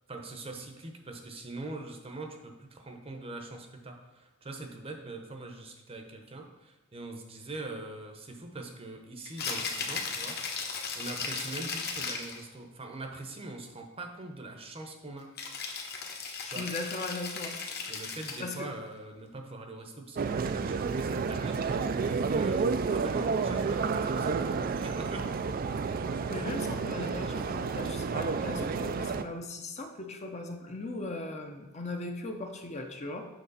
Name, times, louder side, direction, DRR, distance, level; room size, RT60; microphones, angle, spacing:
voice 1, 0.1-10.4 10.9-15.3 16.5-16.8 17.9-25.3, right 2 dB, 25° right, 4 dB, 0.8 m, -42 dB
Rattle (instrument), 9.3-12.4 15.4-18.6, left 5 dB, 50° left, 1.1 m, -36 dB
voice 2, 16.4-17.6 18.4-18.7 26.3-33.3, left 2 dB, 30° left, 4 dB, 0.7 m, -38 dB
sound 1, 20.2-29.2, right 5 dB, 40° right, 0.3 m, -30 dB
8.0 x 6.0 x 4.1 m, 1.0 s
head